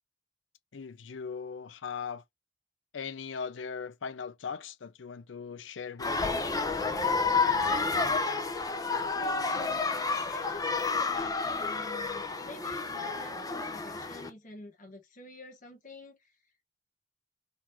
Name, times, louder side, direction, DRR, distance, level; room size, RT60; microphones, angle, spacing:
voice 1, 0.7-2.2 2.9-6.3, left 6 dB, 75° left, 0.5 m, -39 dB
sound 1, 6.0-14.3, left 4 dB, 20° left, 0.7 m, -30 dB
voice 2, 9.1-16.4, left 2 dB, 45° left, 1.1 m, -48 dB
4.1 x 2.8 x 4.4 m
head